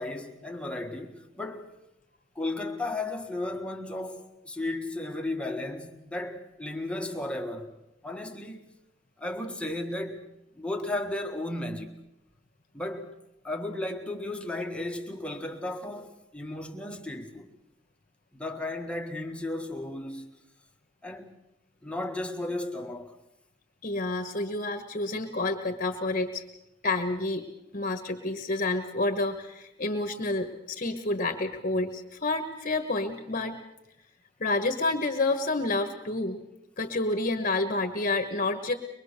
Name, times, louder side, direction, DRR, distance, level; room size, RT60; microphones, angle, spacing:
voice 1, 0.0-1.7 2.3-7.7 8.0-8.7 9.2-10.3 10.5-11.9 12.7-13.1 13.4-17.5 18.3-20.4 21.0-21.3 21.8-23.1, left 2 dB, 5° left, 1.7 m, -34 dB
voice 2, 23.8-26.4 26.8-27.5 27.7-33.6 34.4-36.4 36.8-38.7, left 2 dB, 45° left, 1.4 m, -29 dB
23.5 x 22.0 x 6.7 m
head